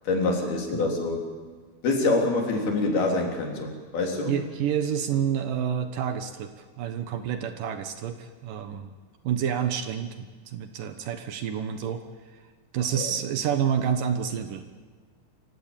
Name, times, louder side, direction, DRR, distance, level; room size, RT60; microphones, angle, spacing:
voice 1, 0.1-1.3 1.8-4.3 12.9-13.1, left 3 dB, 70° left, 1 dB, 5.4 m, -26 dB
voice 2, 4.3-8.9 9.2-12.0 12.7-14.7, right 8 dB, 65° right, 8 dB, 2.6 m, -29 dB
26.5 x 16.0 x 8.9 m, 1.5 s
omnidirectional pair, 4.5 m